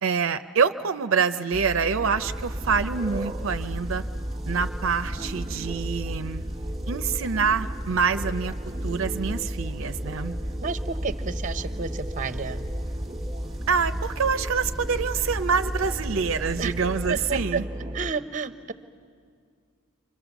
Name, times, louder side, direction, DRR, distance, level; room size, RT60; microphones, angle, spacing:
voice 1, 0.0-4.0 4.5-6.4 6.9-8.5 8.8-10.3 13.7-17.7, right 5 dB, 75° right, 10 dB, 0.6 m, -26 dB
sound 1, 1.5-18.1, equal, 20° right, 1.2 m, -35 dB
sound 2, 2.2-17.4, equal, ahead, 1.2 m, -36 dB
voice 2, 10.6-12.6 16.6-16.7 17.1-17.6 17.9-18.7, right 5 dB, 40° right, 11 dB, 0.8 m, -30 dB
29.5 x 25.0 x 7.1 m, 2.1 s
head